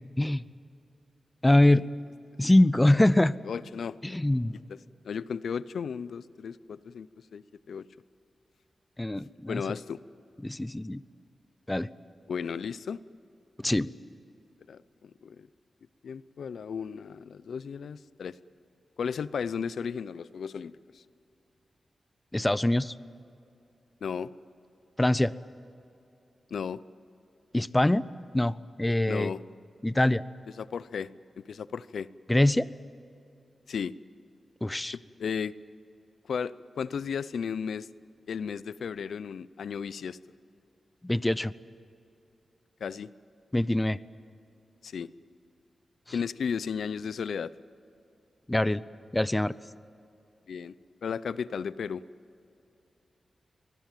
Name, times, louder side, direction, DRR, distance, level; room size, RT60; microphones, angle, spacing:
voice 1, 1.4-1.9 2.4-3.4 4.0-4.5 9.0-9.6 10.4-11.0 11.7-11.9 13.6-13.9 22.3-22.9 25.0-25.3 27.5-28.0 28.3-29.3 29.8-30.2 32.3-32.7 34.6-34.9 41.0-41.5 43.5-44.0 48.5-48.8 49.1-49.5, left 1 dB, 15° left, 17 dB, 0.6 m, -23 dB
voice 2, 3.4-4.2 4.7-4.8 5.0-7.9 9.5-10.0 12.3-13.0 14.7-15.5 16.0-18.4 19.0-21.0 24.0-24.3 26.5-26.8 29.1-29.4 30.6-31.1 31.5-32.1 33.7-33.9 34.9-35.5 36.3-37.9 38.3-40.2 42.8-43.1 44.8-45.1 46.1-47.5 50.5-50.7 51.0-52.0, left 6 dB, 85° left, 17 dB, 0.5 m, -34 dB
24.0 x 20.5 x 9.1 m, 2.7 s
wide cardioid pair, 95°, 0 cm